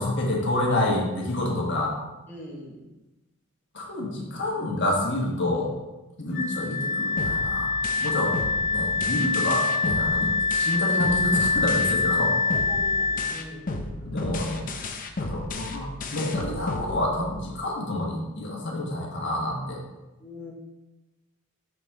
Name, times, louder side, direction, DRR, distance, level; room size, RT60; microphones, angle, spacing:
voice 1, 0.0-1.9 3.7-5.7 6.2-7.7 8.0-8.3 8.7-12.3 14.0-14.7 15.2-19.8, left 1 dB, 55° left, -1 dB, 1.4 m, -28 dB
voice 2, 2.3-2.8 12.5-14.3 20.2-20.5, left 1 dB, 10° left, -4 dB, 0.9 m, -42 dB
Wind instrument woodwind instrument, 6.3-13.4, left 4 dB, 70° left, 1.7 m, -25 dB
sound 1, 7.2-12.2 12.5-17.5, left 2 dB, 40° left, 0.6 m, -34 dB
6.1 x 6.0 x 3.6 m, 1.1 s
head